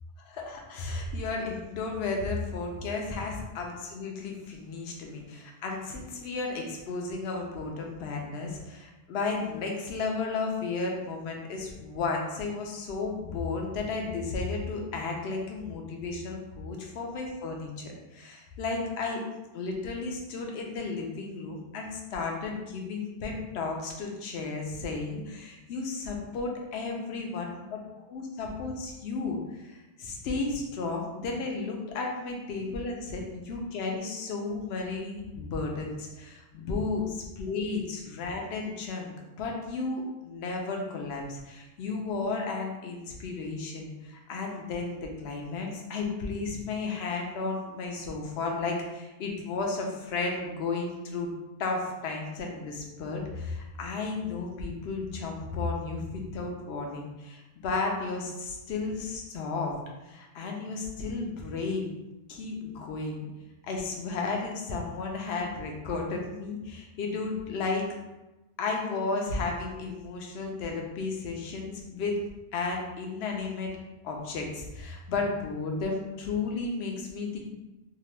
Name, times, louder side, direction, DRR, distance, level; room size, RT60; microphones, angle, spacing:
voice 1, 0.3-19.2 19.5-27.8 28.1-51.3 51.6-59.7 60.0-61.9 62.3-63.3 63.7-67.9 68.6-72.2 72.5-73.7 74.0-77.4, left 3 dB, 70° left, 1 dB, 0.8 m, -33 dB
2.8 x 2.2 x 3.1 m, 1.0 s
omnidirectional pair, 1.2 m